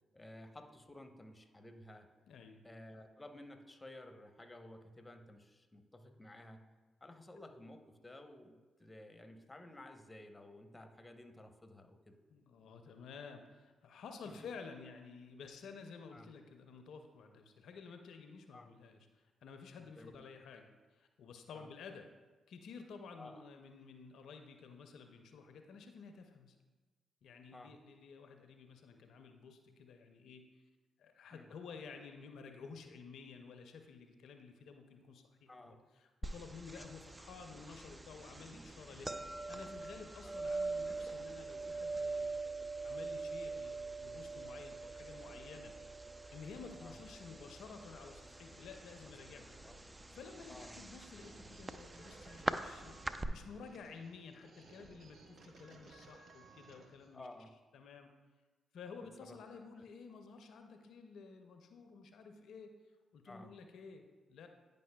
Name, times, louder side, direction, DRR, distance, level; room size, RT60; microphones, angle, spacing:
voice 1, 0.1-2.1 2.6-6.6 7.0-12.2 14.4-14.5 16.1-16.3 18.5-18.7 20.0-20.2 21.5-21.7 23.2-23.4 27.5-27.7 31.3-31.5 35.5-35.8 38.9-39.0 40.2-40.3 46.8-47.0 49.0-49.8 50.5-50.8 57.1-57.5 59.2-59.8 63.3-63.5, left 1 dB, 20° left, 7 dB, 0.8 m, -54 dB
voice 2, 2.3-2.6 12.3-22.1 22.5-26.5 27.2-30.5 31.0-39.1 39.5-42.4 42.8-45.7 46.3-49.5 50.1-53.0 53.3-57.3 57.7-58.1 58.7-62.7 63.1-64.5, left 5 dB, 70° left, 6 dB, 0.5 m, -52 dB
sound 1, 36.2-53.3, right 3 dB, 20° right, 0.4 m, -43 dB
sound 2, 49.2-57.1, right 3 dB, 60° right, 0.7 m, -60 dB
9.2 x 5.2 x 2.2 m, 1.3 s
hypercardioid pair, 45°, 0 cm